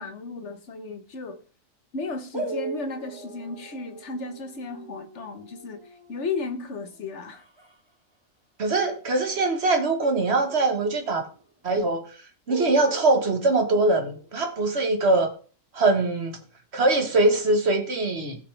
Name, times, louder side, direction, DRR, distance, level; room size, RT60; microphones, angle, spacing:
voice 1, 0.0-1.4 1.9-5.8 6.1-7.4, left 3 dB, 60° left, 1.5 m, -34 dB
sound 1, 2.3-7.8 10.0-11.5 11.7-11.8 12.5-14.7, right 2 dB, 20° right, 1.4 m, -39 dB
voice 2, 8.6-11.3 11.6-12.0 12.5-15.3 15.7-16.4 16.7-18.4, right 2 dB, 50° right, 1.9 m, -22 dB
16.5 x 6.0 x 3.5 m
omnidirectional pair, 1.4 m